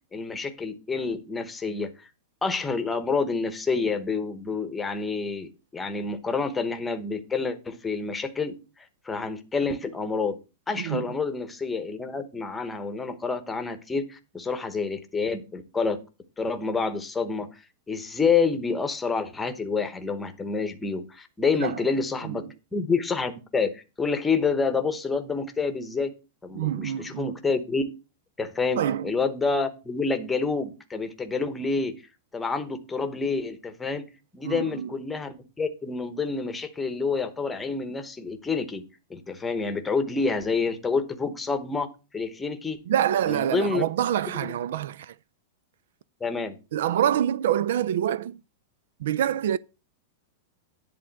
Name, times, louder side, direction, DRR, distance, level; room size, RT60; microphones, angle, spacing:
voice 1, 0.1-2.1 2.4-8.6 9.0-10.4 10.7-16.0 16.4-17.6 17.9-26.1 26.4-27.8 28.4-31.9 32.3-34.0 34.3-38.8 39.1-42.8 43.3-43.8 44.4-44.5 46.2-46.6, left 4 dB, 10° left, 0.9 m, -28 dB
voice 2, 26.6-27.3 28.8-29.1 34.4-34.9 42.9-45.1 46.7-48.4 49.0-49.6, right 10 dB, 70° right, 0.4 m, -26 dB
10.5 x 3.7 x 7.4 m
supercardioid pair, 165°, 0 cm